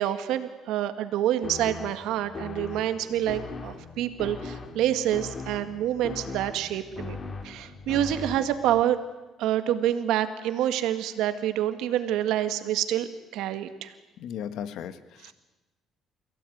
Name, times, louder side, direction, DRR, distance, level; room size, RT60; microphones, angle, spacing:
voice 1, 0.0-7.2 7.4-9.0 9.4-13.1 13.3-13.9 15.2-15.3, right 11 dB, 85° right, 9 dB, 1.8 m, -27 dB
sound 1, 1.4-8.8, left 4 dB, 35° left, 2.2 m, -39 dB
voice 2, 14.2-15.3, left 9 dB, 75° left, 12 dB, 1.5 m, -36 dB
29.5 x 16.5 x 9.4 m, 1.1 s
cardioid pair, 125°, 0 cm